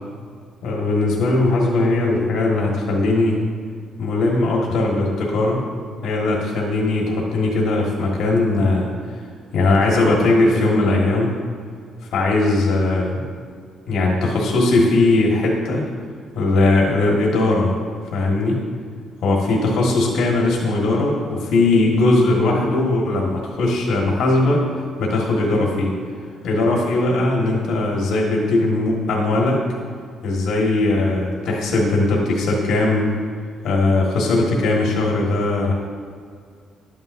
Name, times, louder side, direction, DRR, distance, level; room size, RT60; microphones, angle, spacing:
voice 1, 0.6-3.4 4.0-5.6 6.0-9.2 9.5-11.3 12.1-13.2 13.9-15.8 16.3-17.7 18.1-18.6 19.2-24.6 25.0-25.9 26.4-29.6 30.2-33.1 33.6-35.7, left 2 dB, 85° left, -2 dB, 1.4 m, -19 dB
11.0 x 8.8 x 2.6 m, 2.1 s
cardioid pair, 120°, 0 cm